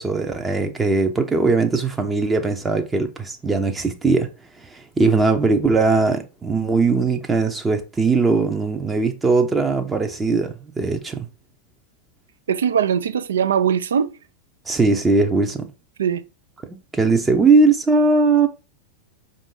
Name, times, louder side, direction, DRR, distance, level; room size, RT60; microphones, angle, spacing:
voice 1, 0.0-4.3 4.6-11.3 14.7-15.7 16.9-18.5, right 3 dB, 15° right, 0.6 m, -19 dB
voice 2, 12.5-14.2 16.0-16.2, right 8 dB, 65° right, 0.3 m, -20 dB
5.2 x 2.6 x 3.5 m
figure-of-eight pair, 90°, 0 cm